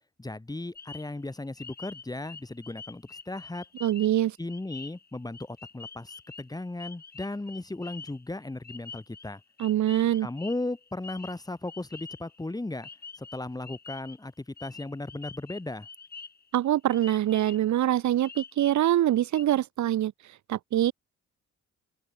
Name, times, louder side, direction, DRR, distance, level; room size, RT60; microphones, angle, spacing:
voice 1, 0.2-3.6 4.4-9.4 10.2-12.9 13.2-15.9, left 2 dB, 10° left, 2.5 m, -36 dB
sound 1, 0.7-12.5 12.8-14.2 14.6-16.6 16.9-17.7 18.2-18.8 19.1-19.4, left 4 dB, 30° left, 5.1 m, -46 dB
voice 2, 3.8-4.4 9.6-10.3 16.5-20.9, right 12 dB, 70° right, 1.6 m, -24 dB
open air
cardioid pair, 90°, 30 cm